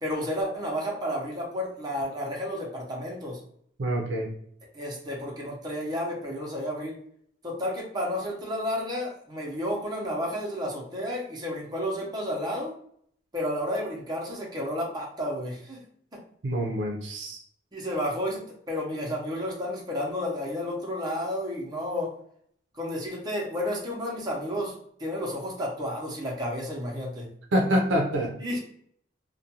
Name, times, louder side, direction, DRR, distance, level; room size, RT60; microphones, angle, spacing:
voice 1, 0.0-3.4 4.7-7.0 7.4-12.7 13.3-15.8 16.1-16.2 17.7-22.1 22.7-27.3 28.4-28.6, equal, 20° right, -3 dB, 0.7 m, -31 dB
voice 2, 3.8-4.3 16.4-17.4 27.5-28.3, equal, 70° right, 1 dB, 0.6 m, -26 dB
2.4 x 2.2 x 2.8 m, 0.64 s
head